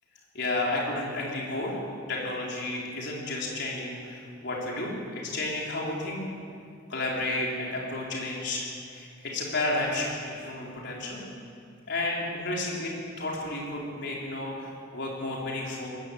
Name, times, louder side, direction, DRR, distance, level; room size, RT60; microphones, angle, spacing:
voice 1, 0.3-1.8 2.1-6.2 6.9-11.2 11.9-15.9, left 2 dB, 60° left, -3 dB, 4.4 m, -32 dB
21.5 x 14.0 x 8.5 m, 2.4 s
head